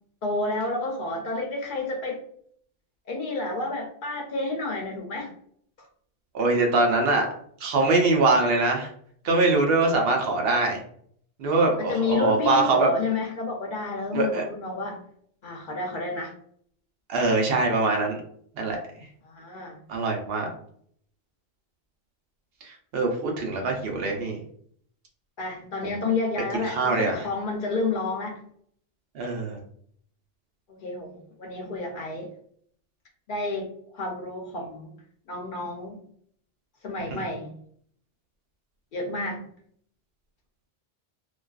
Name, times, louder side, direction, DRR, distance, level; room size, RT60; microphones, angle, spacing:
voice 1, 0.2-2.2 3.1-5.3 5.8-5.9 11.8-15.0 15.4-16.3 19.2-19.8 25.4-28.4 30.8-32.3 33.3-34.9 35.3-36.0 36.8-37.5 38.9-39.4, left 3 dB, 60° left, 2 dB, 0.6 m, -30 dB
voice 2, 6.3-7.3 7.6-8.9 9.2-10.8 11.4-12.9 14.1-14.4 17.1-18.2 18.6-18.8 19.9-20.5 22.9-24.4 25.8-26.0 26.6-27.2 29.1-29.6 37.1-37.2, right 3 dB, 70° right, 1 dB, 0.8 m, -23 dB
2.4 x 2.2 x 2.3 m, 0.62 s
omnidirectional pair, 1.1 m